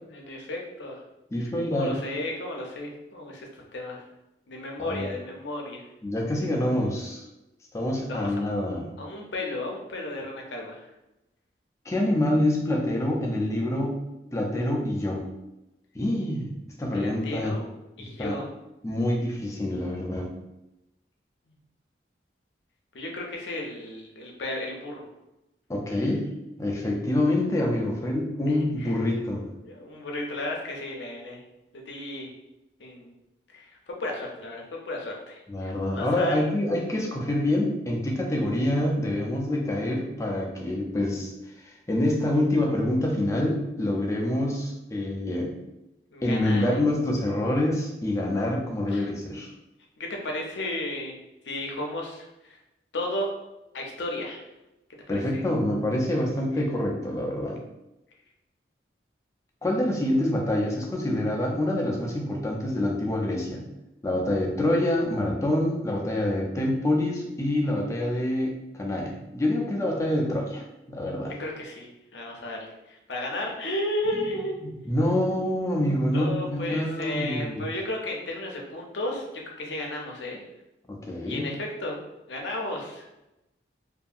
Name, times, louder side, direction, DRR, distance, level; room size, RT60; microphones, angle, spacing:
voice 1, 0.1-1.0 1.4-4.0 4.5-5.9 8.1-8.4 9.0-10.9 16.9-17.7 18.0-18.5 22.9-25.0 25.9-26.1 28.5-29.0 29.6-31.4 31.7-32.3 32.8-33.1 33.5-36.5 46.1-46.8 48.9-49.1 50.0-51.2 51.4-52.6 52.9-53.3 53.7-54.4 55.1-55.4 71.4-74.6 76.1-80.4 81.3-82.0 82.3-83.1, left 1 dB, 80° left, 0 dB, 0.6 m, -34 dB
voice 2, 1.3-1.9 4.8-5.1 6.0-7.2 7.7-8.9 11.9-14.0 14.3-15.2 15.9-16.5 16.8-17.5 18.0-18.4 18.8-20.3 25.7-26.3 26.6-29.5 35.5-41.3 41.6-45.5 46.2-49.5 55.1-57.6 59.6-63.7 64.0-71.3 74.6-77.6 80.9-81.5, left 1 dB, 15° left, -1 dB, 0.4 m, -26 dB
2.7 x 2.6 x 2.4 m, 0.94 s
head